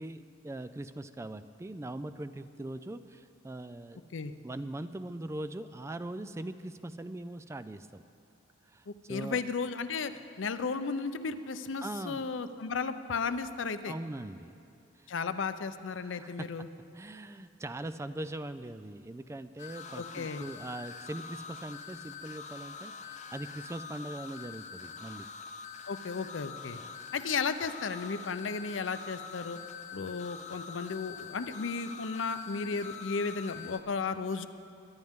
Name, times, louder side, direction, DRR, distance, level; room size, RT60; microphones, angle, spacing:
voice 1, 0.0-4.0 4.4-8.0 8.7-9.4 11.8-12.3 13.9-14.5 15.0-15.1 16.0-16.5 16.9-25.3 26.8-27.0, right 1 dB, 15° right, 12 dB, 0.3 m, -41 dB
voice 2, 8.9-13.9 15.1-16.7 20.0-20.5 25.9-26.8 27.1-29.6 29.9-34.5, left 4 dB, 85° left, 11 dB, 0.6 m, -34 dB
sound 1, 19.6-33.8, left 6 dB, 40° left, 0.6 m, -45 dB
22.5 x 10.5 x 3.6 m, 2.6 s
head